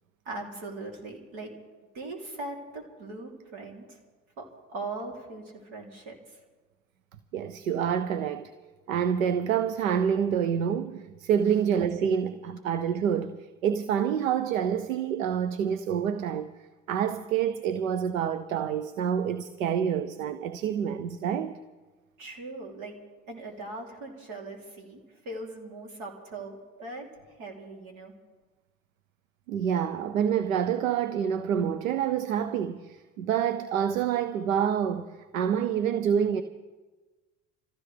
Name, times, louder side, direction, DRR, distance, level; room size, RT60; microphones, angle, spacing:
voice 1, 0.2-1.5 1.9-4.0 4.4-6.4 22.2-23.0 23.3-25.0 25.2-27.1 27.4-28.1, right 2 dB, 70° right, 3.2 m, -40 dB
voice 2, 7.3-8.5 8.9-16.5 16.9-21.6 29.5-36.4, right 8 dB, 90° right, 0.6 m, -27 dB
26.5 x 15.0 x 3.3 m
hypercardioid pair, 60°, 39 cm